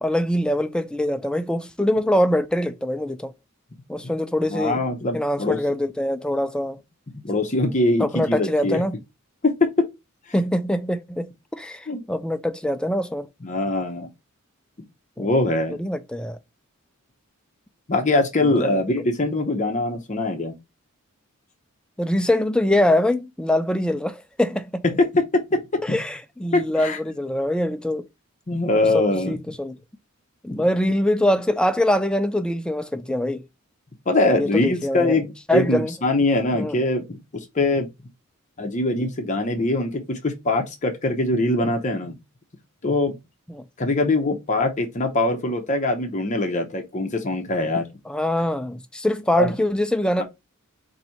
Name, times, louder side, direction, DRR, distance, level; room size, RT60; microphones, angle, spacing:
voice 1, 0.0-3.3 3.9-4.8 5.1-6.8 8.0-8.9 10.3-13.3 15.2-15.3 15.8-16.4 18.4-18.8 22.0-24.8 25.8-28.1 28.8-29.8 30.4-33.4 34.3-35.2 35.5-35.9 36.5-36.8 43.5-43.6 48.1-50.2, left 1 dB, 5° left, 0.4 m, -23 dB
voice 2, 4.5-5.6 7.1-8.8 9.4-9.7 11.9-12.0 13.4-14.1 15.2-15.8 17.9-20.5 25.1-25.2 25.5-26.0 26.5-27.0 28.5-29.4 34.1-37.2 37.5-37.9 38.6-42.2 42.8-43.2 43.8-47.8 49.3-49.5, left 2 dB, 35° left, 0.7 m, -22 dB
4.1 x 2.7 x 4.3 m
head